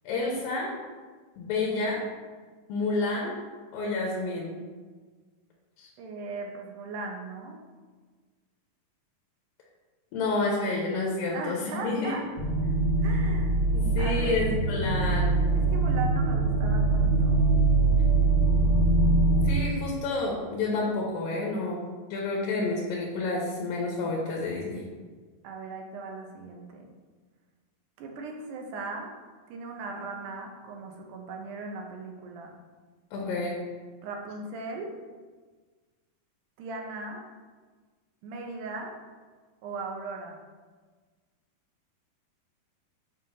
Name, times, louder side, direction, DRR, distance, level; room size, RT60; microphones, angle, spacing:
voice 1, 0.0-0.7 1.4-2.0 2.7-3.3 3.7-4.6 5.8-5.9 10.1-12.1 13.7-15.3 19.4-24.8 33.1-33.5, left 3 dB, 80° left, -3 dB, 2.5 m, -29 dB
voice 2, 6.0-7.6 11.3-12.2 13.0-13.6 14.0-14.5 15.6-17.5 25.4-26.8 28.0-29.1 29.5-32.6 34.0-34.9 36.6-37.2 38.2-39.0 39.6-40.4, right 3 dB, 75° right, 1 dB, 2.1 m, -38 dB
sound 1, 12.4-19.5, right 3 dB, 55° left, 1.0 m, -23 dB
7.5 x 2.5 x 5.5 m, 1.4 s
omnidirectional pair, 4.0 m